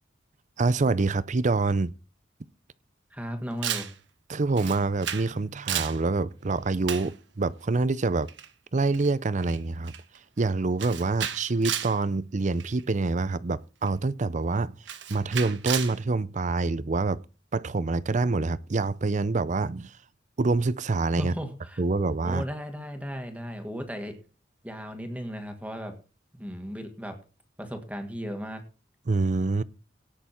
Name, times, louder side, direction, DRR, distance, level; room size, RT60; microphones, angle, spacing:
voice 1, 0.6-1.9 4.3-8.3 8.7-9.9 10.4-14.7 15.1-17.2 17.5-19.9 20.4-21.3 21.8-22.4 29.1-29.6, right 3 dB, 40° right, 0.5 m, -26 dB
voice 2, 3.1-3.9 21.2-21.8 22.2-24.2 24.6-26.0 26.3-27.2 27.6-28.6, equal, 10° right, 1.8 m, -35 dB
Camera, 3.6-3.9 4.6-5.3 5.6-6.0 6.9-7.1 8.3-8.5 8.9-9.1 9.4-9.6 9.9-10.2 10.8-12.0 12.6-12.8 13.9-14.0 14.9-16.0, right 10 dB, 80° right, 1.3 m, -32 dB
17.5 x 6.7 x 4.5 m
head